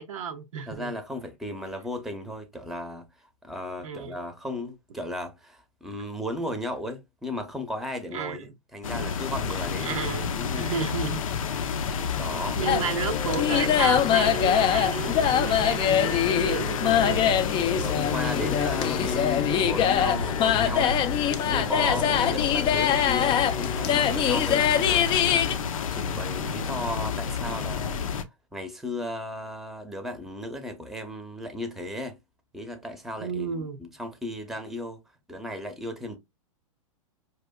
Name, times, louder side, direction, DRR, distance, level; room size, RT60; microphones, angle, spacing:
voice 1, 0.0-0.9 3.8-4.2 8.1-8.5 9.8-11.2 11.9-12.0 12.6-17.4 33.2-33.8, right 6 dB, 70° right, 0.6 m, -32 dB
voice 2, 0.7-3.1 3.4-10.1 10.3-10.7 12.1-12.6 17.6-21.0 21.3-25.6 25.9-28.0 28.5-32.2 32.5-35.0 35.3-36.2, left 1 dB, ahead, 0.8 m, -35 dB
sound 1, 8.8-28.2, left 6 dB, 75° left, 0.6 m, -30 dB
sound 2, 12.7-25.5, left 9 dB, 25° left, 0.5 m, -24 dB
4.8 x 2.7 x 2.2 m
hypercardioid pair, 105°, 18 cm